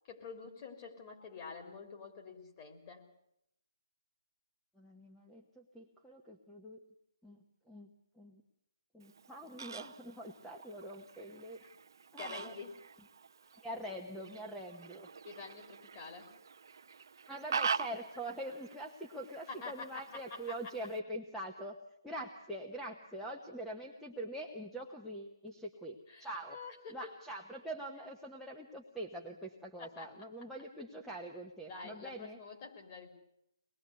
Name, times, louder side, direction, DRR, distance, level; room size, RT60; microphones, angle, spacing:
voice 1, 0.1-3.1 12.2-12.7 15.2-16.3 19.5-20.2 20.5-20.6 26.1-27.0 29.8-30.1 31.7-33.1, left 4 dB, 25° left, 3 dB, 3.8 m, -47 dB
voice 2, 4.7-6.8 7.2-8.4 8.9-11.6 12.1-12.5 13.6-15.1 17.3-21.8 22.0-26.6 26.9-32.4, right 1 dB, ahead, 0 dB, 1.1 m, -44 dB
Fowl, 9.0-21.0, right 6 dB, 55° right, 0.8 m, -44 dB
24.5 x 20.5 x 8.2 m, 0.77 s
hypercardioid pair, 160°, 3 cm